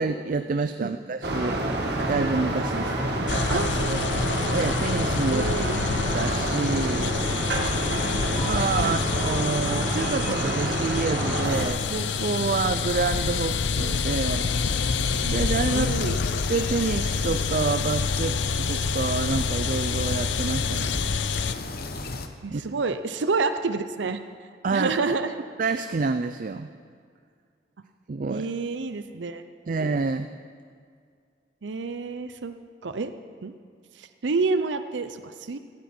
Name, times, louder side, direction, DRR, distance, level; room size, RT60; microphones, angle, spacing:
voice 1, 0.0-1.6 2.0-3.1 3.5-4.0 4.5-5.5 5.9-7.5 8.4-14.5 15.2-21.0 22.5-22.6 24.6-24.9 25.6-26.7 28.1-28.5 29.7-30.3, right 4 dB, 45° right, 9 dB, 0.4 m, -28 dB
sound 1, 1.2-11.7, right 1 dB, 65° right, 1.8 m, -27 dB
sound 2, 3.3-21.5, left 5 dB, 80° left, 0.6 m, -28 dB
voice 2, 3.5-3.9 5.2-5.8 8.8-9.0 15.7-16.2 22.4-24.2 24.7-25.3 28.3-29.4 31.6-32.6 32.8-33.1 33.4-33.5 34.0-35.6, right 4 dB, 85° right, 10 dB, 0.6 m, -28 dB
sound 3, 11.4-22.3, left 2 dB, 55° left, 0.9 m, -34 dB
16.5 x 13.0 x 4.4 m, 2.1 s
head